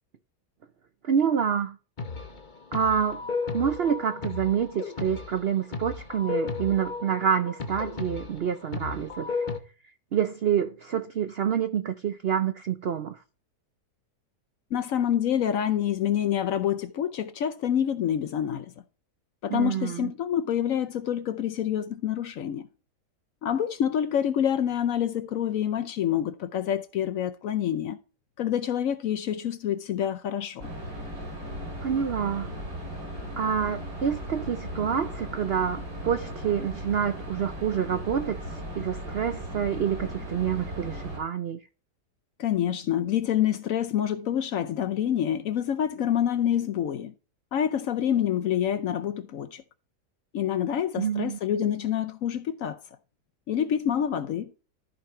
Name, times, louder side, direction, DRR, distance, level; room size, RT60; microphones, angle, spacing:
voice 1, 1.0-1.8 2.7-3.2 3.5-9.3 10.1-13.2 19.5-20.1 31.8-32.5 33.4-41.6 51.0-51.4, right 8 dB, 75° right, 0.5 m, -27 dB
sound 1, 2.0-9.6, left 4 dB, 35° left, 0.8 m, -34 dB
voice 2, 14.7-18.7 19.4-22.7 23.4-28.0 28.4-30.7 42.4-47.1 47.5-49.6 50.3-52.8 53.5-54.5, left 10 dB, 65° left, 0.9 m, -27 dB
sound 2, 30.6-41.2, equal, 60° right, 4.4 m, -37 dB
14.0 x 5.2 x 3.2 m
omnidirectional pair, 1.8 m